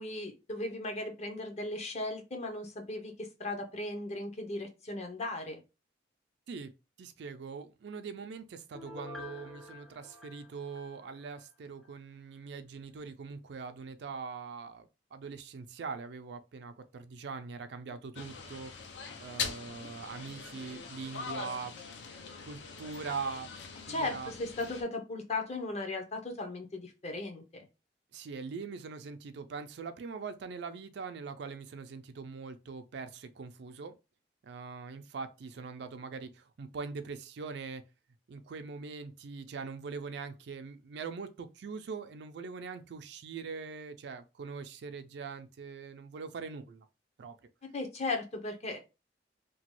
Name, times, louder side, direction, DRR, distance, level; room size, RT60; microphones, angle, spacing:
voice 1, 0.0-5.6 19.8-19.9 23.9-27.7 47.7-48.8, left 2 dB, 40° left, 0.7 m, -37 dB
voice 2, 7.0-18.7 19.2-21.7 22.5-23.5 23.9-24.3 28.1-34.0 34.4-37.8 38.3-46.9 47.2-47.4, right 5 dB, 70° right, 0.4 m, -42 dB
Piano, 8.7-11.4 11.8-11.9, left 2 dB, ahead, 0.5 m, -48 dB
sound 1, 18.1-24.8, left 5 dB, 70° left, 0.5 m, -42 dB
2.9 x 2.2 x 2.9 m
head